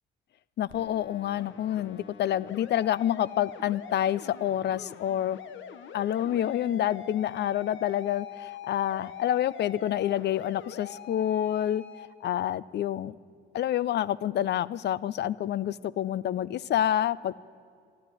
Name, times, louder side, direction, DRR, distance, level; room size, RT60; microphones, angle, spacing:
voice 1, 0.6-5.4 5.9-11.8 12.2-13.2 13.5-17.4, left 11 dB, 60° left, 20 dB, 0.5 m, -28 dB
sound 1, 0.7-12.1, left 8 dB, 75° left, 1.0 m, -44 dB
12.0 x 11.5 x 9.7 m, 2.3 s
cardioid pair, 90°, 20 cm